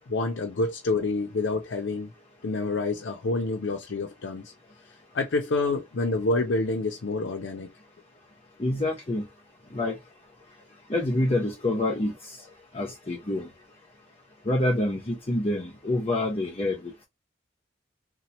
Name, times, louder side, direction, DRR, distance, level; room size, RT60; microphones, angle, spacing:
voice 1, 0.1-2.1 2.4-4.5 5.1-7.7, left 3 dB, 90° left, 0.5 m, -28 dB
voice 2, 8.6-9.2 9.7-10.0 10.9-12.1 12.7-13.5 14.5-16.8, left 1 dB, 30° left, 0.6 m, -26 dB
2.8 x 2.1 x 4.1 m
head